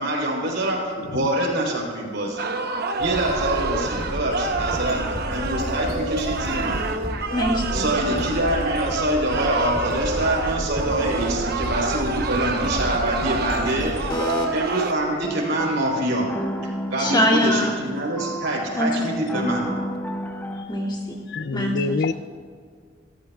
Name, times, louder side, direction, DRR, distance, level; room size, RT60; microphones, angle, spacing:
voice 1, 0.0-2.5 3.0-6.8 7.7-14.1 14.5-16.3 16.9-19.8, right 1 dB, 75° right, -2 dB, 4.5 m, -25 dB
voice 2, 1.0-1.3 21.3-22.1, left 3 dB, 65° left, 13 dB, 0.5 m, -26 dB
sound 1, 2.4-14.9, right 3 dB, 60° right, 1.0 m, -28 dB
sound 2, 3.0-15.6, equal, 20° right, 3.8 m, -32 dB
voice 3, 7.3-7.9 14.1-14.5 17.0-17.8 18.8-19.0 20.7-21.2 21.5-22.0, left 1 dB, 25° left, -4 dB, 2.7 m, -23 dB
sound 3, 15.2-20.7, equal, 10° left, 1.1 m, -32 dB
27.5 x 14.0 x 2.4 m, 2.1 s
head